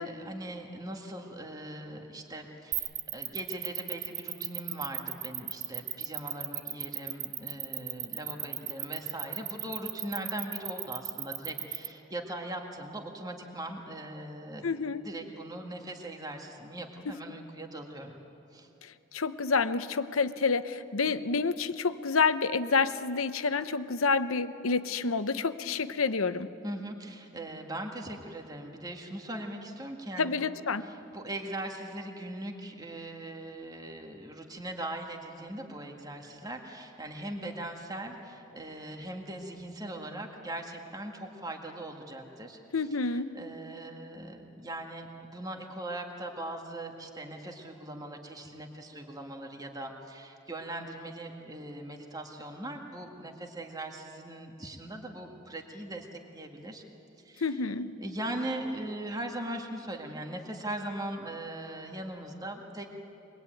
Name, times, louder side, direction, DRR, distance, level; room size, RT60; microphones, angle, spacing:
voice 1, 0.0-18.2 18.5-18.7 26.6-30.5 30.8-56.8 57.2-57.7 58.0-62.9, right 1 dB, 20° right, 2 dB, 1.9 m, -40 dB
sound 1, 2.7-11.9, right 15 dB, 40° right, 0.8 m, -35 dB
voice 2, 14.6-15.0 19.1-26.5 30.2-30.9 42.7-43.3 57.4-57.9, left 4 dB, 90° left, 12 dB, 0.9 m, -28 dB
24.0 x 21.0 x 9.2 m, 2.8 s
head